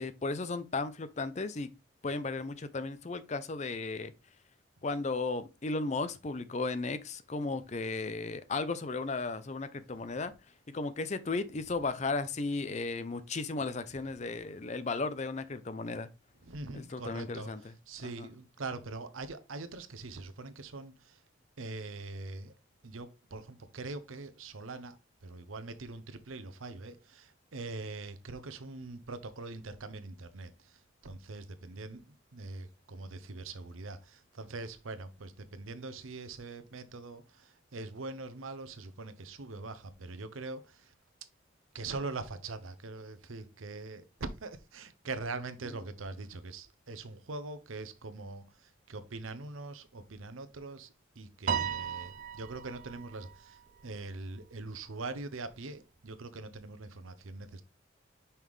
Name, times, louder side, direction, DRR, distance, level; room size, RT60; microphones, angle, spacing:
voice 1, 0.0-1.7 2.0-4.1 4.8-10.3 10.7-16.1 16.7-17.6 18.2-18.3, left 3 dB, 35° left, 0.5 m, -35 dB
voice 2, 16.4-21.2 21.6-22.5 22.8-40.9 41.7-57.6, right 3 dB, 80° right, 0.8 m, -43 dB
Piano, 51.5-54.0, right 7 dB, 40° right, 0.4 m, -36 dB
5.6 x 4.8 x 3.6 m
head